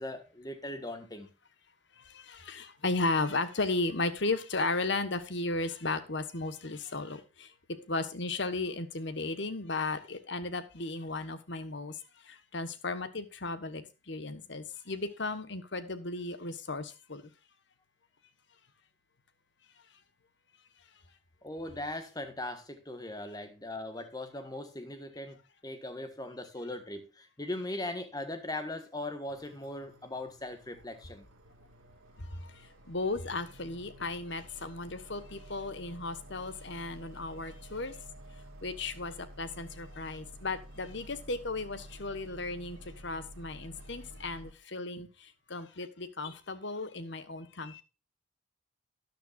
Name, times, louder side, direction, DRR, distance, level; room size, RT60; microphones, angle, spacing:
voice 1, 0.0-1.3 21.4-31.2, left 1 dB, 20° left, 1.5 m, -39 dB
voice 2, 2.0-7.5 7.8-11.9 12.2-17.2 32.2-32.5 32.9-38.0 38.6-42.8 43.0-47.8, left 3 dB, 60° left, 1.3 m, -35 dB
sound 1, 29.3-44.5, right 1 dB, 90° right, 1.6 m, -51 dB
12.5 x 10.0 x 2.5 m
head